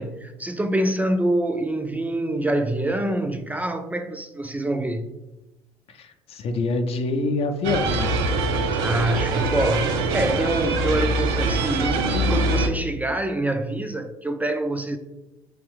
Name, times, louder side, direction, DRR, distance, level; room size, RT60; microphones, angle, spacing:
voice 1, 0.0-5.1 8.7-15.0, right 1 dB, 10° right, 0.3 m, -25 dB
voice 2, 5.9-8.2, left 3 dB, 50° left, 0.5 m, -26 dB
sound 1, 7.6-12.7, right 2 dB, 85° right, 0.4 m, -23 dB
3.5 x 3.0 x 3.2 m
hypercardioid pair, 65°, 13 cm